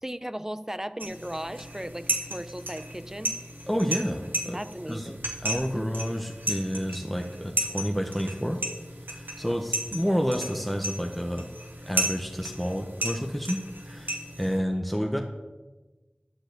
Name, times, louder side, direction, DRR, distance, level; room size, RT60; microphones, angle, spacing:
voice 1, 0.0-3.4 4.5-5.2 5.7-5.9 9.4-9.6, equal, 15° right, 12 dB, 0.6 m, -36 dB
sound 1, 1.0-14.6, right 1 dB, 85° right, 1.5 m, -34 dB
voice 2, 3.7-4.6 4.9-5.1 5.4-8.6 9.1-11.5 11.9-13.6 13.8-15.2, equal, 5° left, 2 dB, 0.9 m, -29 dB
12.0 x 4.8 x 8.0 m, 1.2 s
wide cardioid pair, 40°, 3 cm